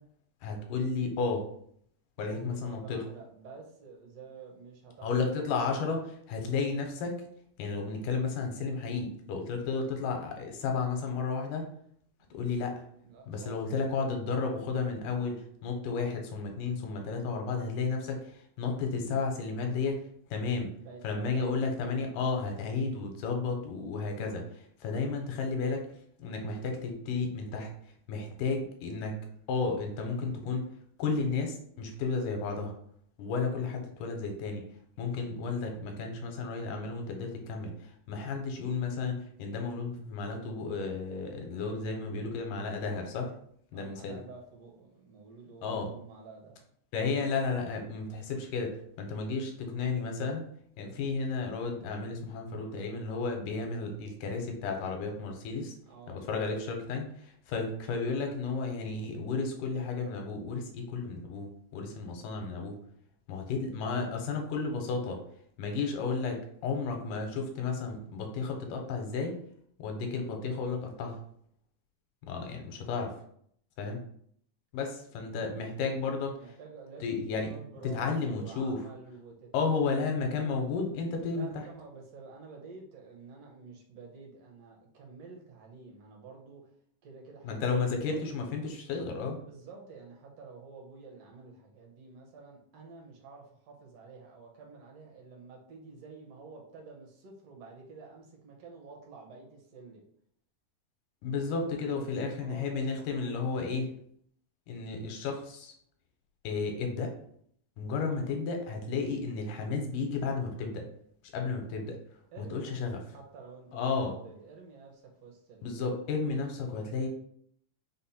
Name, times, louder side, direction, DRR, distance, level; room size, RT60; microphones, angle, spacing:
voice 1, 0.4-1.5 2.2-3.0 5.0-6.0 6.3-7.2 7.6-11.7 12.3-12.8 13.3-20.8 21.0-25.9 26.2-27.7 28.1-29.2 29.5-30.7 31.0-32.7 33.2-34.7 35.0-43.3 43.7-44.2 45.6-45.9 46.9-50.4 50.8-55.7 56.1-62.8 63.3-65.2 65.6-69.4 69.8-71.2 72.2-73.2 73.8-74.0 74.7-76.4 77.0-77.5 77.9-78.8 79.5-81.6 87.4-89.4 101.2-103.9 104.7-105.7 106.4-107.1 107.8-110.9 111.3-112.0 112.4-113.0 113.7-114.1 115.6-117.1, left 4 dB, 80° left, 3 dB, 2.2 m, -33 dB
voice 2, 2.2-5.1 5.6-5.9 12.2-12.4 13.0-13.6 20.7-22.0 43.7-46.6 55.9-56.2 76.4-80.7 81.3-86.8 87.0-88.2 89.5-100.0 101.9-103.4 112.3-115.9 116.4-117.1, right 4 dB, 65° right, -1 dB, 1.7 m, -50 dB
5.5 x 2.1 x 4.1 m, 0.65 s
omnidirectional pair, 3.8 m